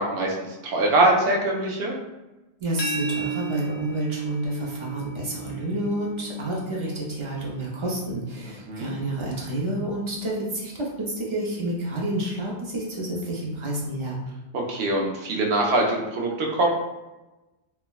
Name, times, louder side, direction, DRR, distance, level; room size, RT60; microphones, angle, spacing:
voice 1, 0.0-2.0 8.7-8.9 14.5-16.7, right 2 dB, 65° right, -1 dB, 0.7 m, -23 dB
voice 2, 2.6-14.2, right 1 dB, 45° right, -4 dB, 0.4 m, -29 dB
sound 1, 2.8-8.5, right 5 dB, 75° left, 0.8 m, -35 dB
3.3 x 2.0 x 2.2 m, 1.0 s
omnidirectional pair, 1.1 m